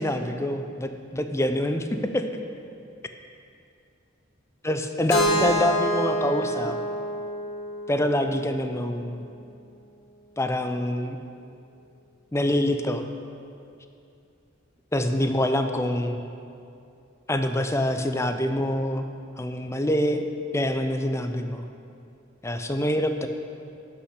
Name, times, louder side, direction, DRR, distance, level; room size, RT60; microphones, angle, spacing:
voice 1, 0.0-1.9 2.1-2.2 4.6-6.8 7.9-9.2 10.4-11.2 12.3-13.0 14.9-16.2 17.3-19.0 19.4-20.3 20.5-21.6 22.4-23.3, left 1 dB, 15° left, 7 dB, 0.5 m, -25 dB
Keyboard (musical), 5.1-9.0, equal, 90° left, 1.7 m, -27 dB
11.5 x 5.8 x 6.6 m, 2.5 s
head